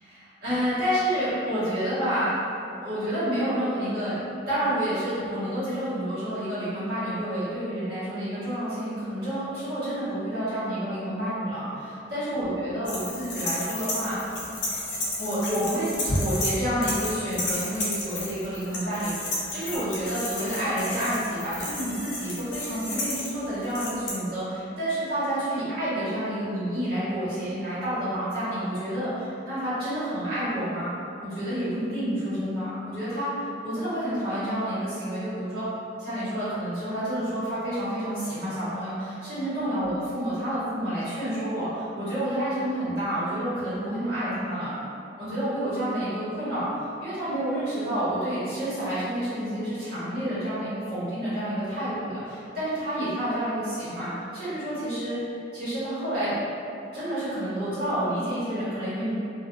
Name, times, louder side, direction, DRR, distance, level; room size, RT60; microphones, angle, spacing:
voice 1, 0.1-2.3 2.8-4.2 4.5-14.2 15.2-30.9 31.2-33.3 33.6-35.6 36.0-44.7 45.2-46.7 47.0-55.2 55.5-56.3 56.9-59.1, right 1 dB, 50° right, -13 dB, 1.5 m, -29 dB
sound 1, 12.9-16.5 16.8-24.1, left 2 dB, 65° left, 0.7 m, -32 dB
2.8 x 2.7 x 2.6 m, 2.6 s
head